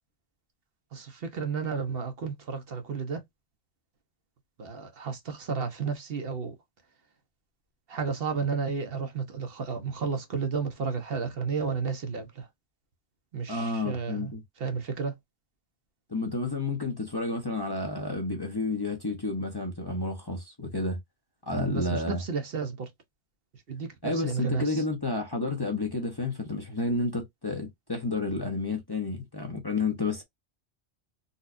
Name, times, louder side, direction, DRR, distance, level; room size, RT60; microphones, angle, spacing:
voice 1, 0.9-3.2 4.6-6.5 7.9-12.5 13.3-14.3 14.6-15.1 21.5-22.9 23.7-24.8, right 5 dB, 60° right, 1.0 m, -32 dB
voice 2, 13.5-14.4 16.1-21.0 21.5-22.2 24.0-30.2, left 2 dB, 25° left, 0.8 m, -30 dB
4.0 x 2.4 x 2.5 m
omnidirectional pair, 1.1 m